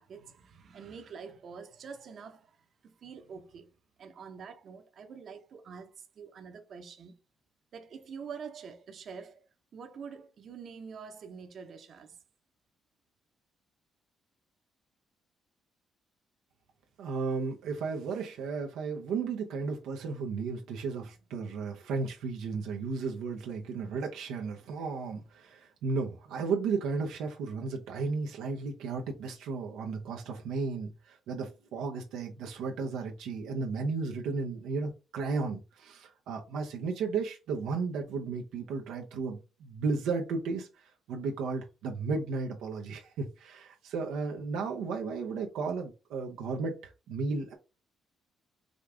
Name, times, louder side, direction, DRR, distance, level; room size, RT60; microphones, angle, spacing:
voice 1, 0.0-3.7 4.0-7.1 7.7-9.4 9.7-12.2, right 6 dB, 60° right, 0.9 m, -46 dB
voice 2, 17.0-47.5, right 4 dB, 90° right, 0.7 m, -34 dB
5.1 x 2.4 x 3.4 m
cardioid pair, 90°, 0 cm